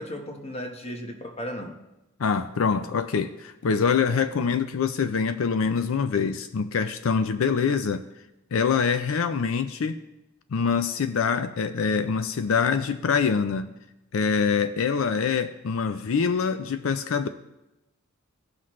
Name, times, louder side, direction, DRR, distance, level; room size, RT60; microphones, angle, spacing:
voice 1, 0.0-1.8, equal, 30° left, 3 dB, 1.2 m, -35 dB
voice 2, 2.2-8.0 8.5-10.0 10.5-13.7 14.1-17.3, left 6 dB, 85° left, 11 dB, 0.5 m, -25 dB
17.0 x 5.9 x 3.2 m, 0.97 s
head